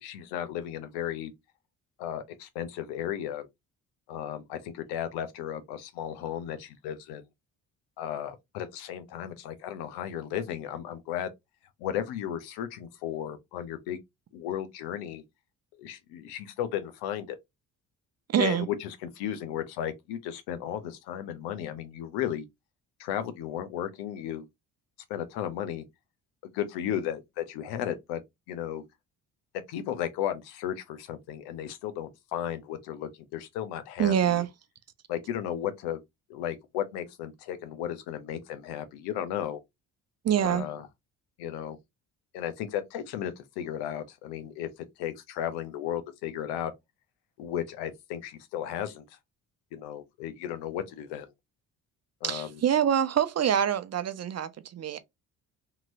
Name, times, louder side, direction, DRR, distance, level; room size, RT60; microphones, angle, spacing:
voice 1, 0.0-1.3 2.0-3.5 4.1-7.2 8.0-11.3 11.8-14.0 14.3-15.2 15.8-17.4 18.4-22.5 23.0-24.4 25.1-25.8 26.5-28.2 28.5-28.8 29.7-34.4 35.1-36.0 36.3-39.6 40.5-40.9 41.4-41.8 42.3-44.7 45.0-46.7 47.4-49.0 49.7-51.3 52.2-52.5, left 10 dB, 85° left, 0.7 m, -34 dB
voice 2, 18.3-18.7 34.0-34.5 40.2-40.7 52.2-55.0, right 9 dB, 40° right, 0.6 m, -25 dB
3.0 x 2.8 x 2.5 m
supercardioid pair, 60°, 39 cm